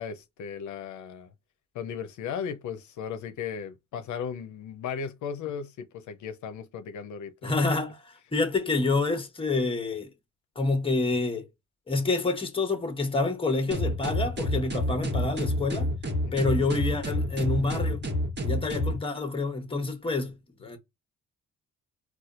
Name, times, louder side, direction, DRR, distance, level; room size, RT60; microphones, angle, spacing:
voice 1, 0.0-1.3 1.7-7.5 16.2-16.5, left 7 dB, 75° left, 0.6 m, -36 dB
voice 2, 7.4-8.0 8.3-10.1 10.6-11.5 11.9-15.9 16.3-18.0 18.4-20.8, left 3 dB, 20° left, 1.0 m, -27 dB
sound 1, 13.7-19.0, equal, 35° right, 1.2 m, -28 dB
4.2 x 2.3 x 2.5 m
cardioid pair, 90°, 30 cm